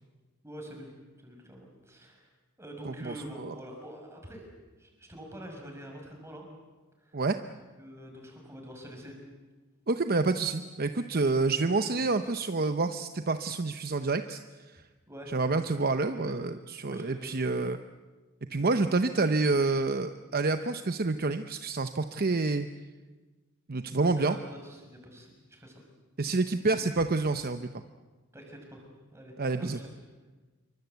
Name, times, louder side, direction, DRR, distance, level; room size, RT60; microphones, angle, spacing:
voice 1, 0.4-0.9 1.2-2.3 2.6-4.5 4.8-6.5 7.0-7.2 7.8-9.1 15.1-15.4 16.1-16.3 16.8-17.6 24.0-25.8 26.7-26.9 28.3-29.9, equal, 10° right, 1 dB, 6.2 m, -46 dB
voice 2, 2.8-3.5 7.1-7.4 9.9-14.4 14.7-14.8 15.3-17.8 18.5-22.7 23.7-24.4 26.2-27.8 29.4-29.8, right 3 dB, 45° right, 9 dB, 0.8 m, -28 dB
27.0 x 24.0 x 8.2 m, 1.3 s
head